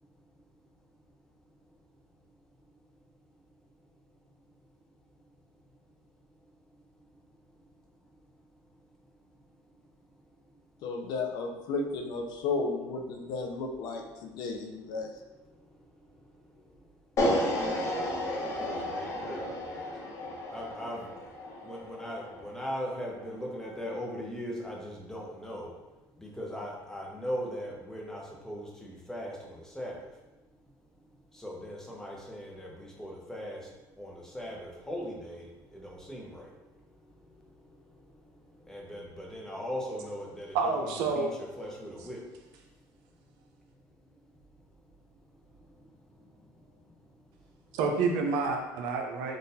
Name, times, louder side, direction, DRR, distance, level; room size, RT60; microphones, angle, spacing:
voice 1, 10.8-15.1, left 3 dB, 70° left, 2 dB, 0.5 m, -33 dB
sound 1, 17.2-23.3, left 1 dB, 40° left, 0.9 m, -33 dB
voice 2, 18.3-19.9 20.5-21.0 21.6-25.7 26.2-30.0 31.4-33.6 34.0-36.5 38.7-42.2, equal, 5° left, -2 dB, 0.8 m, -39 dB
voice 3, 40.5-41.3 47.7-49.4, right 4 dB, 80° right, 3 dB, 0.5 m, -28 dB
3.8 x 2.4 x 2.7 m, 1.1 s
supercardioid pair, 100°, 8 cm